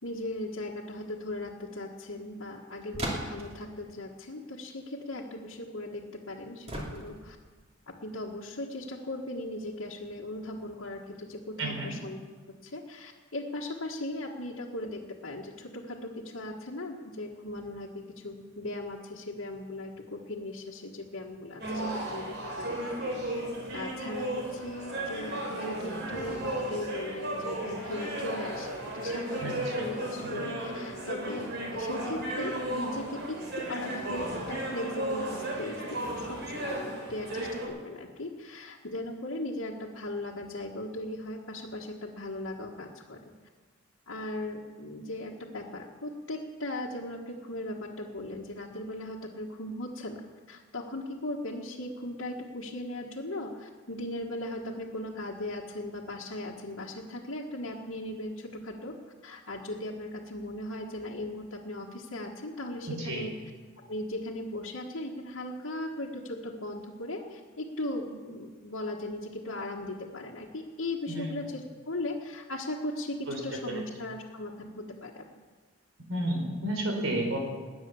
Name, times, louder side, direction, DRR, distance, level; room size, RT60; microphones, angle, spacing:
voice 1, 0.0-7.4 7.9-12.2 12.5-22.8 23.7-43.3 44.1-50.2 50.5-58.9 59.2-63.3 63.9-71.6 71.9-75.2, left 1 dB, 85° left, -5 dB, 1.7 m, -38 dB
sound 1, 2.9-3.6 6.7-7.4, right 1 dB, 30° right, 2.7 m, -35 dB
voice 2, 11.6-11.9 29.4-29.9 30.3-30.4 62.9-63.3 71.1-71.3 73.3-73.4 73.7-73.8 76.1-77.4, right 1 dB, 90° right, 2 dB, 4.4 m, -32 dB
sound 2, 21.6-37.7, right 1 dB, 60° right, 4.4 m, -34 dB
20.5 x 9.7 x 7.2 m, 1.4 s
head